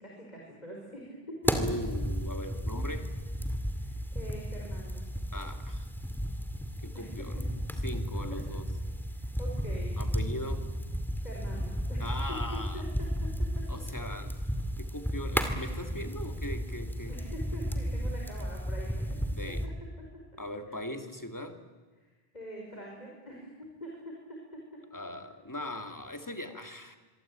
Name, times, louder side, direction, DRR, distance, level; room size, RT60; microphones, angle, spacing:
voice 1, 0.0-1.6 3.7-5.0 6.9-7.3 8.3-8.5 9.1-10.0 11.1-13.1 13.4-13.6 17.1-19.2 20.7-20.8 22.0-23.5 23.8-24.6, equal, 45° left, -2 dB, 5.4 m, -44 dB
sound 1, 1.4-19.7, equal, ahead, 2.2 m, -33 dB
voice 2, 1.6-3.1 5.3-5.9 6.8-7.3 7.8-8.6 10.0-10.7 12.0-12.8 13.7-14.4 14.8-17.1 19.4-19.7 20.4-21.6 24.9-27.0, left 1 dB, 20° left, 7 dB, 2.2 m, -39 dB
25.5 x 23.5 x 8.9 m, 1.4 s
omnidirectional pair, 1.0 m